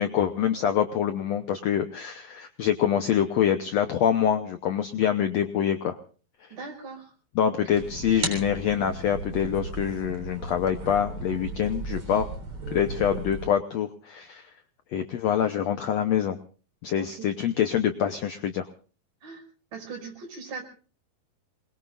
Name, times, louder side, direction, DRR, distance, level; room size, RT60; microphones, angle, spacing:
voice 1, 0.0-6.0 7.3-12.3 12.7-14.5 14.9-16.4 16.8-18.7, left 9 dB, 90° left, 8 dB, 1.4 m, -25 dB
voice 2, 6.5-7.1 7.5-7.8 16.9-17.3 19.2-19.4 19.7-20.6, right 4 dB, 55° right, 2 dB, 7.0 m, -40 dB
sound 1, 7.7-13.5, right 3 dB, 40° right, 4.5 m, -35 dB
27.5 x 21.0 x 2.5 m, 0.39 s
omnidirectional pair, 4.4 m